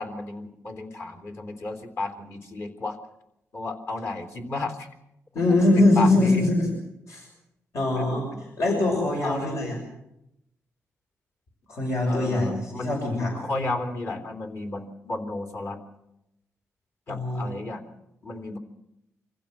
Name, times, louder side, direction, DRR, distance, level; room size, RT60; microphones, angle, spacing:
voice 1, 0.0-3.0 3.5-4.9 5.3-6.5 8.0-8.4 9.2-9.5 12.1-13.0 13.3-15.8 17.1-17.9 18.2-18.6, left 2 dB, 50° left, 5 dB, 3.5 m, -33 dB
voice 2, 5.3-6.7 7.1-7.3 7.7-8.3 8.6-9.8 11.7-13.3 17.1-17.4, left 2 dB, 65° left, 0 dB, 6.4 m, -22 dB
25.0 x 15.5 x 7.6 m, 0.85 s
cardioid pair, 100°, 5 cm